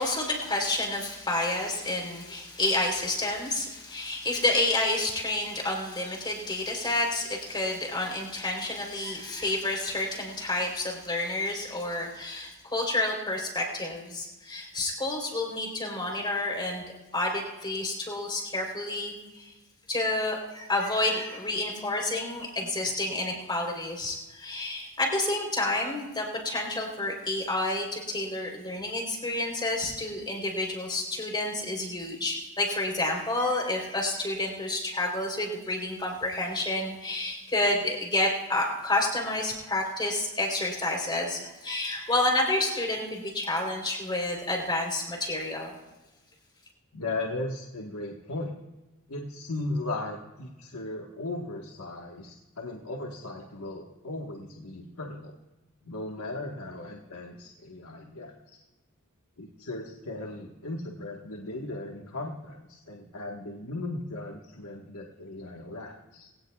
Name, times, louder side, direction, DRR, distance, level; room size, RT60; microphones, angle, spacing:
voice 1, 0.0-16.8 17.1-19.5 19.9-45.7, left 2 dB, 20° left, 1 dB, 3.7 m, -29 dB
voice 2, 46.9-48.5 49.1-55.4 55.8-58.6 59.4-66.3, left 2 dB, 85° left, 0 dB, 1.5 m, -37 dB
21.5 x 17.5 x 2.4 m, 1.1 s
head